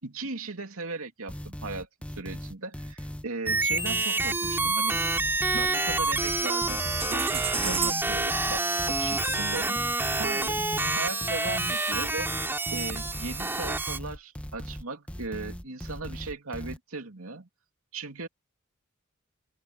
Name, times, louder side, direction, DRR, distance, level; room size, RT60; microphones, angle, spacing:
voice 1, 0.0-5.0 5.5-10.6 10.9-12.3 12.7-17.5 17.9-18.3, right 3 dB, 85° right, 2.7 m, -38 dB
sound 1, 1.3-16.8, equal, 5° left, 1.0 m, -39 dB
sound 2, 3.5-14.0, right 2 dB, 10° right, 3.0 m, -28 dB
sound 3, 5.6-6.7 7.0-11.7 12.0-13.2, right 8 dB, 25° right, 0.9 m, -37 dB
voice 2, 7.6-8.1 10.6-11.1 11.5-11.7, equal, 65° left, 6.5 m, -40 dB
head